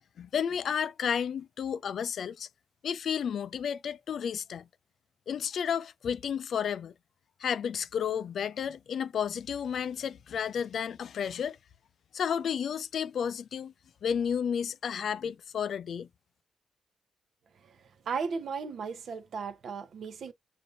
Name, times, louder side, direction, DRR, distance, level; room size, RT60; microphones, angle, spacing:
voice 1, 0.2-2.5 2.8-4.7 5.3-6.9 7.4-11.6 12.1-13.7 14.0-16.1, left 7 dB, 65° left, 0.3 m, -32 dB
voice 2, 18.1-20.3, right 5 dB, 65° right, 0.8 m, -35 dB
6.6 x 2.6 x 2.5 m
cardioid pair, 100°, 0 cm